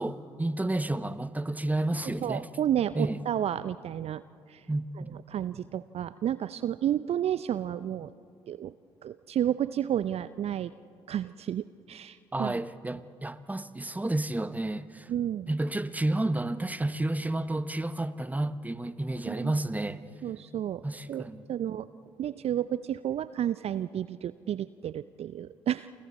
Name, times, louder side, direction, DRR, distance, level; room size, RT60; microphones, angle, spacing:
voice 1, 0.0-2.5 2.9-3.2 4.7-5.2 12.3-15.1 15.5-20.0 20.8-21.5, right 2 dB, 10° right, 1.1 m, -31 dB
voice 2, 2.2-4.2 4.5-4.6 5.3-8.1 8.5-8.7 9.0-10.7 11.1-12.6 15.1-15.5 19.3-19.5 20.2-21.9 22.2-25.9, right 10 dB, 50° right, 0.5 m, -31 dB
29.0 x 25.5 x 4.3 m
figure-of-eight pair, 40°, 13 cm